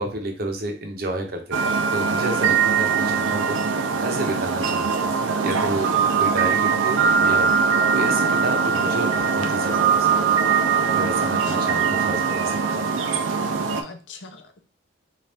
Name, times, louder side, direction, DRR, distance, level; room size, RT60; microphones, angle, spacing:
voice 1, 0.0-3.6 4.0-5.1 5.4-7.5 7.9-10.3 10.9-12.8, right 2 dB, 50° right, 4 dB, 0.7 m, -30 dB
sound 1, 1.5-13.8, right 6 dB, 85° right, 0.5 m, -21 dB
voice 2, 11.2-11.8 13.8-14.6, left 3 dB, 70° left, 6 dB, 0.6 m, -41 dB
4.1 x 2.4 x 3.3 m, 0.38 s
head